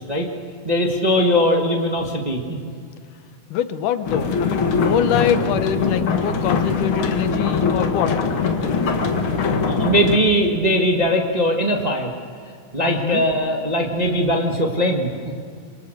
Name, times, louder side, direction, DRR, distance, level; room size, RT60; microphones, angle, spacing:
voice 1, 0.6-2.6 9.6-12.1 12.7-15.1, equal, 20° right, 1 dB, 1.3 m, -20 dB
voice 2, 3.5-8.2 12.9-13.2, left 9 dB, 85° left, 11 dB, 2.5 m, -24 dB
sound 1, 4.0-10.2, left 5 dB, 50° left, 2.1 m, -22 dB
27.0 x 25.0 x 6.7 m, 2.2 s
omnidirectional pair, 3.6 m